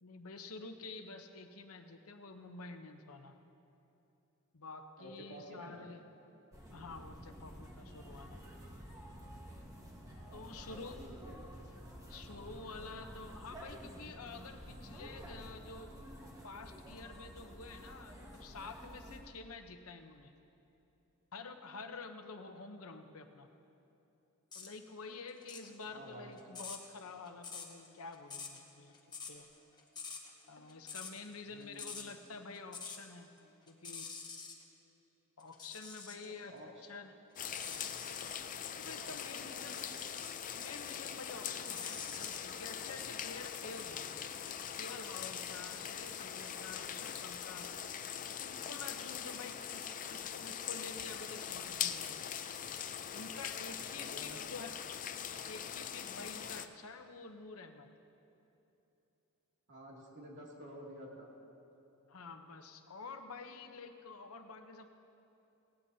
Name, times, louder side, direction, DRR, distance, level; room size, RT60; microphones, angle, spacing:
voice 1, 0.0-3.4 4.5-6.0 6.7-8.4 10.3-11.0 12.1-16.0 16.4-20.3 21.3-23.5 24.5-29.0 29.3-29.5 30.5-33.3 33.7-34.1 35.4-37.1 38.7-39.9 40.5-44.1 44.8-47.7 48.4-52.4 53.1-54.8 55.5-57.9 62.1-64.9, left 4 dB, 70° left, 6 dB, 0.9 m, -49 dB
voice 2, 5.0-5.9 10.2-11.7 25.9-26.3 31.5-31.9 36.2-36.9 39.0-39.8 53.9-54.4 59.7-61.3, right 1 dB, 55° right, -3 dB, 2.5 m, -51 dB
sound 1, 6.5-19.2, equal, 15° right, 1.4 m, -51 dB
sound 2, 24.5-24.7 25.3-33.1 33.4-34.6 35.4-36.3 36.8-38.3 39.6-40.4 40.9-42.4, left 5 dB, 20° left, 1.3 m, -47 dB
sound 3, 37.4-56.7, left 8 dB, 35° left, 0.5 m, -42 dB
18.5 x 17.5 x 2.8 m, 2.9 s
head